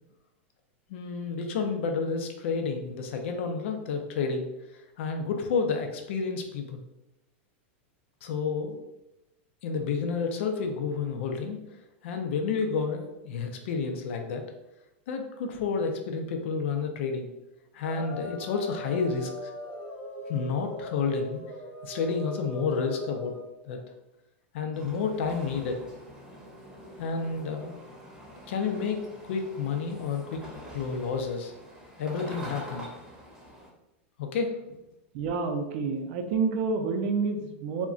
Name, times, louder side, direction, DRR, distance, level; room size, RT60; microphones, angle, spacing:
voice 1, 0.9-4.5 5.0-6.8 8.2-8.8 9.6-11.6 12.0-14.5 15.1-17.3 17.7-19.5 20.3-21.4 21.8-23.4 23.6-23.8 24.5-25.8 27.0-27.8 28.5-30.4 30.7-31.5 32.0-32.9 34.2-34.5, left 5 dB, 75° left, 4 dB, 0.5 m, -30 dB
sound 1, 17.8-23.4, equal, 30° left, 0.6 m, -40 dB
sound 2, 24.7-33.7, equal, 10° right, 0.7 m, -45 dB
voice 2, 35.1-37.9, right 4 dB, 55° right, 5 dB, 0.5 m, -28 dB
2.3 x 2.1 x 3.7 m, 0.95 s
supercardioid pair, 130°, 7 cm